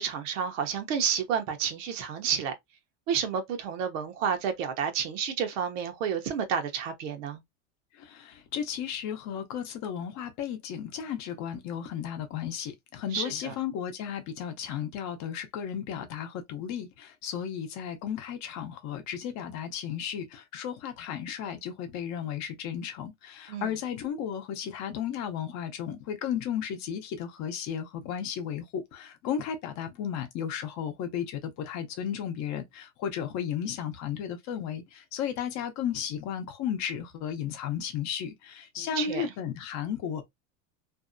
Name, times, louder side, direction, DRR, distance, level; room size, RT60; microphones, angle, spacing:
voice 1, 0.0-2.5 3.1-7.4 13.1-13.5 23.5-23.7 38.8-39.3, right 7 dB, 80° right, 0.8 m, -30 dB
voice 2, 8.0-40.2, left 8 dB, 50° left, 0.6 m, -34 dB
2.6 x 2.1 x 2.5 m
supercardioid pair, 120°, 37 cm